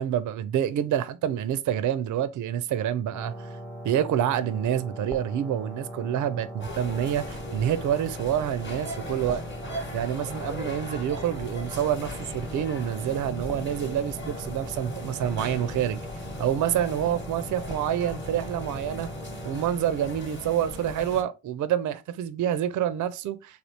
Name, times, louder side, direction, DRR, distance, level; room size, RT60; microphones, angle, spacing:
voice 1, 0.0-3.5 3.8-9.4 9.9-16.0 16.4-19.1 19.4-23.6, right 10 dB, 45° right, 0.5 m, -27 dB
sound 1, 3.1-19.7, equal, 5° left, 0.6 m, -40 dB
sound 2, 6.6-21.2, left 1 dB, 25° left, 1.0 m, -38 dB
3.3 x 2.4 x 2.7 m
hypercardioid pair, 40°, 45 cm